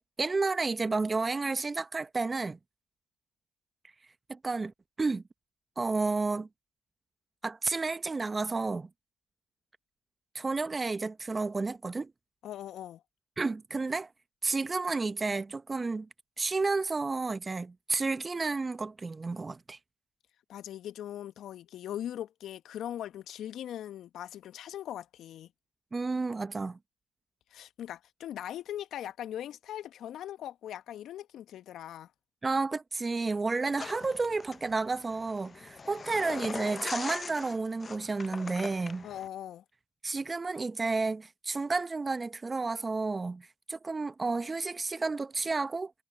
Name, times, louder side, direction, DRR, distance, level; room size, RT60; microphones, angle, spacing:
voice 1, 0.0-2.6 4.3-4.7 5.0-5.2 5.8-6.5 7.4-8.9 10.3-12.1 13.4-14.1 14.4-16.1 16.4-19.8 25.9-26.8 32.4-39.1 40.0-45.9, right 3 dB, 30° right, 0.9 m, -31 dB
voice 2, 12.4-13.0 20.5-25.5 27.5-32.1 39.0-39.6, left 11 dB, 65° left, 1.3 m, -40 dB
sound 1, 33.8-39.3, left 5 dB, 40° left, 0.6 m, -41 dB
hypercardioid pair, 55°, 0 cm